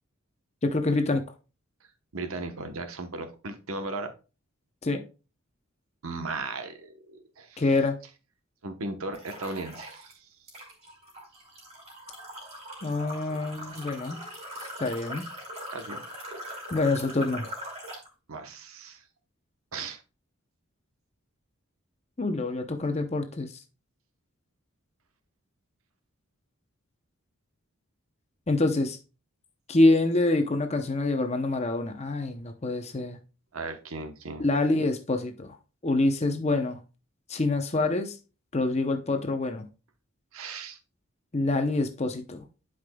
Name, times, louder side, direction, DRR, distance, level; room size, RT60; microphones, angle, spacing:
voice 1, 0.6-1.2 4.8-5.0 7.6-8.0 12.8-14.2 14.8-15.3 16.7-17.5 22.2-23.5 28.5-29.0 29.7-33.2 34.4-35.6 35.8-36.8 37.3-38.2 38.5-39.7 41.3-42.4, left 2 dB, 30° left, 0.7 m, -26 dB
voice 2, 2.1-4.1 6.0-7.6 8.6-10.3 15.7-16.0 18.3-19.0 19.7-20.0 33.5-34.5 40.3-40.8, right 3 dB, 85° right, 1.0 m, -36 dB
sound 1, 9.1-10.1 10.5-18.1, equal, 30° right, 3.6 m, -41 dB
12.0 x 5.1 x 2.3 m
head